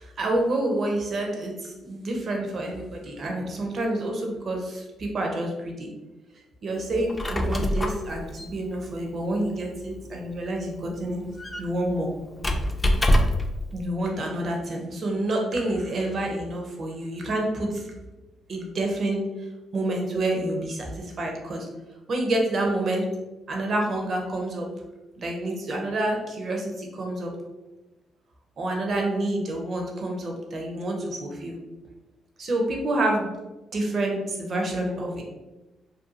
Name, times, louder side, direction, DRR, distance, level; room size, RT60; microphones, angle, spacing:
voice 1, 0.0-5.9 6.6-11.2 11.6-12.1 13.7-17.9 18.5-19.2 19.7-21.7 22.1-23.0 23.5-24.7 25.2-27.3 28.6-31.6 32.4-33.3 33.7-35.2, right 1 dB, 50° right, 1 dB, 0.6 m, -28 dB
Squeak, 6.9-13.6, left 1 dB, 20° left, 0.3 m, -27 dB
2.6 x 2.3 x 2.6 m, 1.1 s
cardioid pair, 90°, 0 cm